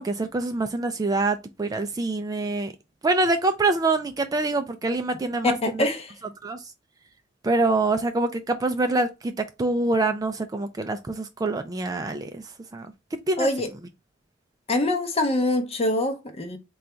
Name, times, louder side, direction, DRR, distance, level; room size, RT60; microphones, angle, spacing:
voice 1, 0.0-2.7 3.0-5.9 6.4-6.7 7.4-13.5, right 2 dB, 20° right, 0.3 m, -25 dB
voice 2, 5.4-6.1 13.4-13.7 14.7-16.6, left 1 dB, 30° left, 0.6 m, -24 dB
3.9 x 2.3 x 4.3 m
head